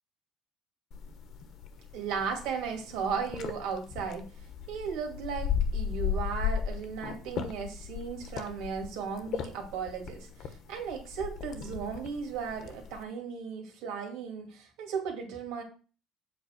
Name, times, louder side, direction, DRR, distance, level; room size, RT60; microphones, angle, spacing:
sound 1, 0.9-13.0, left 7 dB, 60° left, 1.2 m, -36 dB
voice 1, 1.9-4.3 4.7-15.6, right 6 dB, 80° right, 2 dB, 2.6 m, -36 dB
7.9 x 4.5 x 6.0 m, 0.37 s
cardioid pair, 120°, 0 cm